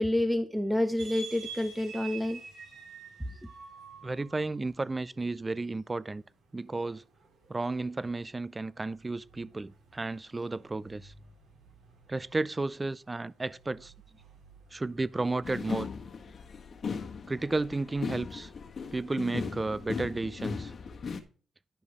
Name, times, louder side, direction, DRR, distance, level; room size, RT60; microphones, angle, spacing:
voice 1, 0.0-2.4, left 1 dB, ahead, 0.8 m, -28 dB
sound 1, 1.0-16.6, right 5 dB, 85° right, 5.1 m, -51 dB
voice 2, 4.0-6.2 6.5-7.0 7.5-11.1 12.1-13.9 14.7-15.9 17.3-18.5 18.9-20.7, right 3 dB, 20° right, 0.5 m, -33 dB
sound 2, 15.4-21.2, left 5 dB, 50° left, 1.7 m, -38 dB
11.5 x 5.3 x 4.8 m
cardioid pair, 80°, 0 cm